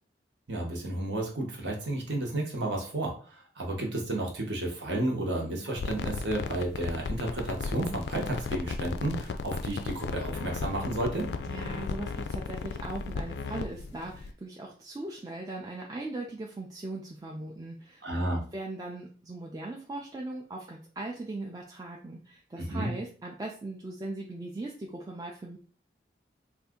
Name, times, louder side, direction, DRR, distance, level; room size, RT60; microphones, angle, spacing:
voice 1, 0.5-11.3 18.0-18.4 22.6-22.9, right 1 dB, 85° right, 0 dB, 1.0 m, -32 dB
sound 1, 5.7-14.3, left 4 dB, 70° left, 0.3 m, -35 dB
voice 2, 11.5-18.0 18.5-25.6, right 2 dB, 20° right, -1 dB, 0.3 m, -39 dB
2.6 x 2.4 x 3.6 m, 0.41 s
head